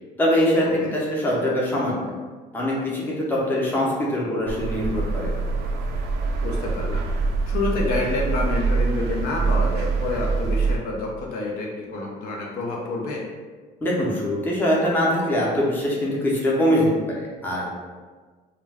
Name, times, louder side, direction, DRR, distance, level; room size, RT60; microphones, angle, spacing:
voice 1, 0.2-2.0 2.5-5.3 13.8-16.9 17.2-17.7, equal, 10° left, -5 dB, 0.6 m, -23 dB
sound 1, 4.5-10.8, right 4 dB, 70° right, 0.4 m, -24 dB
voice 2, 6.4-7.0 7.5-13.2, left 2 dB, 60° left, -2 dB, 0.5 m, -28 dB
2.2 x 2.2 x 3.3 m, 1.4 s
cardioid pair, 145°, 17 cm